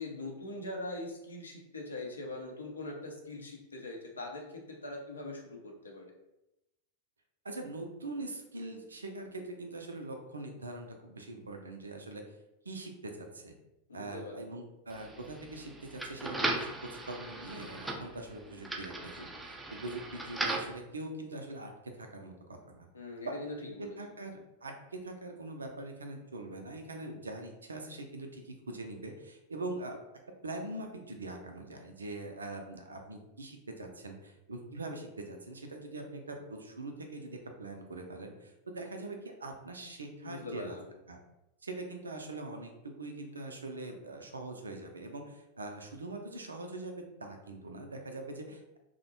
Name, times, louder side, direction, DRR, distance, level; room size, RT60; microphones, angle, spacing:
voice 1, 0.0-6.1 13.9-14.5 22.9-24.0 40.2-40.9, left 2 dB, 75° left, 0 dB, 0.5 m, -42 dB
voice 2, 7.4-12.2 12.6-13.5 13.9-19.3 19.7-21.7 22.0-22.9 23.3-23.4 24.0-30.0 30.4-40.8 41.1-41.2 41.6-48.8, right 2 dB, 75° right, 4 dB, 0.4 m, -43 dB
sound 1, 14.9-20.8, right 2 dB, 5° right, 0.4 m, -38 dB
2.5 x 2.1 x 2.7 m, 0.91 s
figure-of-eight pair, 90°, 0 cm